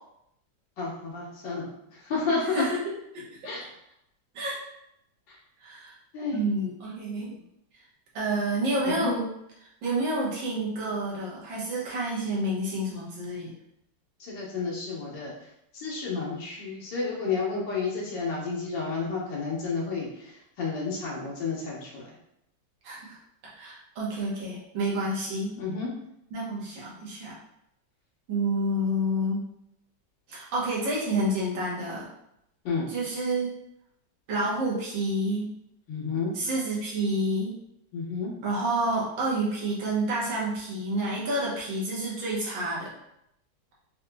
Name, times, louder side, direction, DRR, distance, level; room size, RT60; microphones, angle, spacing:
voice 1, 0.8-1.7 2.0-2.6 3.4-3.6 5.3-5.4 6.1-6.5 8.8-9.1 14.2-15.3 15.7-22.1 25.6-25.9 32.6-32.8 35.9-36.3 37.9-38.3, left 4 dB, 70° left, -4 dB, 1.6 m, -31 dB
voice 2, 2.5-3.2 4.3-4.6 5.6-5.9 6.3-7.4 8.1-9.3 9.6-13.5 22.8-23.2 23.4-25.5 26.3-27.4 28.3-29.4 30.3-32.1 32.9-33.5 34.3-35.5 36.3-37.5 38.4-42.9, right 1 dB, 85° right, -5 dB, 1.8 m, -29 dB
4.6 x 3.0 x 2.2 m, 0.79 s
omnidirectional pair, 2.0 m